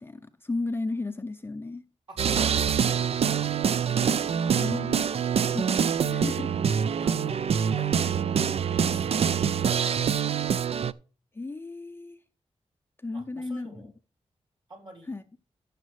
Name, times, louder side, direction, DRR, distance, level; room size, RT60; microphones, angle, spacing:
voice 1, 0.0-1.8 4.1-5.0 5.7-6.5 11.3-12.2 13.0-13.9 15.1-15.2, left 2 dB, 20° left, 0.5 m, -34 dB
voice 2, 2.1-3.8 6.9-8.4 8.9-9.9 13.1-13.9 14.7-15.1, right 2 dB, 45° right, 3.6 m, -48 dB
sound 1, 2.2-10.9, right 7 dB, 65° right, 0.5 m, -25 dB
14.0 x 6.5 x 3.2 m
wide cardioid pair, 160°, 11 cm